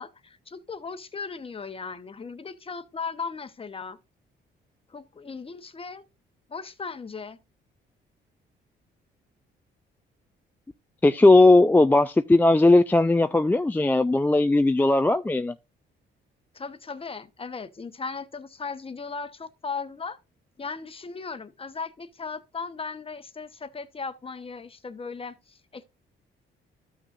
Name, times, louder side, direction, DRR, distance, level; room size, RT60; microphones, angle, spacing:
voice 1, 0.0-4.0 4.9-6.0 6.5-7.4 16.5-20.2 20.6-25.8, left 5 dB, 30° left, 1.0 m, -37 dB
voice 2, 11.0-15.5, left 2 dB, 10° left, 0.3 m, -18 dB
13.0 x 6.2 x 2.5 m
cardioid pair, 90°, 20 cm